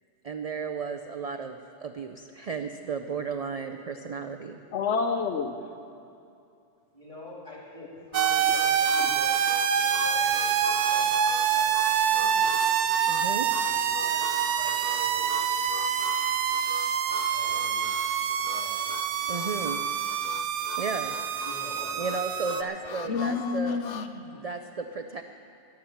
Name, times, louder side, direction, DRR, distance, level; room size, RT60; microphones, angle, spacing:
voice 1, 0.2-4.6 13.1-13.5 19.3-19.8 20.8-21.2 22.0-23.8 24.3-25.2, right 5 dB, 50° right, 7 dB, 0.4 m, -34 dB
voice 2, 4.7-5.6 23.1-24.4, left 5 dB, 75° left, 6 dB, 1.1 m, -28 dB
voice 3, 6.9-9.3 9.8-11.1 11.5-12.6 13.6-13.8 14.0-15.5 17.2-17.9 18.5-18.9 21.4-22.5 22.7-23.0, left 1 dB, 25° left, -4 dB, 3.2 m, -46 dB
Harmonica, 8.1-24.1, left 7 dB, 60° left, 0.4 m, -41 dB
sound 1, 8.1-22.6, right 8 dB, 75° right, 0.9 m, -26 dB
12.5 x 10.5 x 7.2 m, 2.5 s
omnidirectional pair, 1.2 m